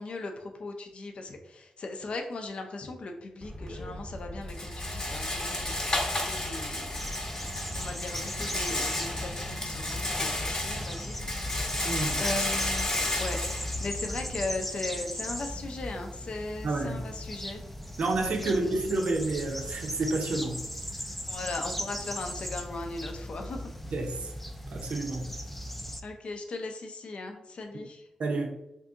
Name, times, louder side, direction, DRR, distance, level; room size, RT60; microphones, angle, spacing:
voice 1, 0.0-5.9 6.2-7.0 7.7-11.9 12.1-12.9 13.2-17.6 18.4-18.9 21.3-23.6 26.0-28.1, left 2 dB, 60° left, 4 dB, 0.5 m, -38 dB
Rattle, 3.4-14.5, left 1 dB, 30° left, 0.8 m, -32 dB
sound 1, 6.9-26.0, equal, 5° left, 0.3 m, -38 dB
voice 2, 11.8-12.2 16.6-17.0 18.0-20.6 23.9-24.3 24.7-25.3 28.2-28.5, right 2 dB, 70° right, 2 dB, 0.6 m, -29 dB
2.7 x 2.5 x 3.5 m, 0.88 s
cardioid pair, 65°, 2 cm